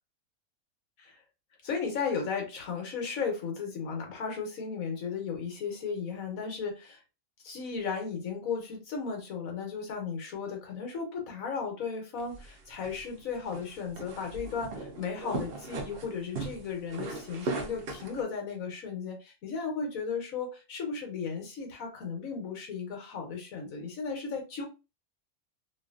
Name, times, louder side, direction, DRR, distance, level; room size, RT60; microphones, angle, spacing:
voice 1, 1.6-7.0 7.4-24.7, left 5 dB, 70° left, 1.2 m, -35 dB
sound 1, 12.2-18.2, right 3 dB, 55° right, 0.7 m, -39 dB
2.9 x 2.5 x 2.4 m
omnidirectional pair, 1.6 m